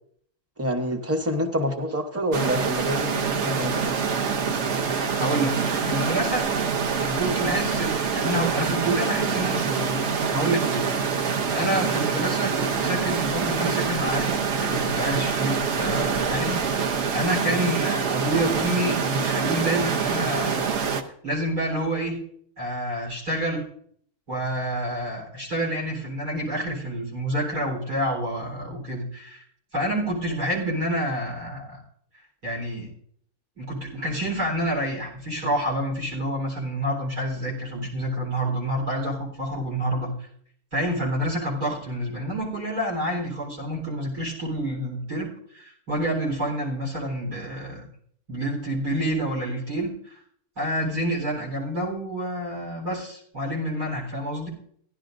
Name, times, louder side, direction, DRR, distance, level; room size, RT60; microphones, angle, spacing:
voice 1, 0.6-4.1, equal, 15° right, 5 dB, 0.7 m, -27 dB
sound 1, 2.3-21.0, right 6 dB, 55° right, 1.0 m, -25 dB
voice 2, 5.2-6.5 7.0-11.2 11.5-20.7 21.2-22.2 22.6-23.6 24.3-29.4 29.7-31.8 32.4-32.9 33.6-40.3 40.7-47.8 48.3-50.2 50.6-54.5, right 1 dB, 85° right, -2 dB, 4.5 m, -28 dB
15.5 x 11.0 x 2.6 m, 0.64 s
omnidirectional pair, 1.6 m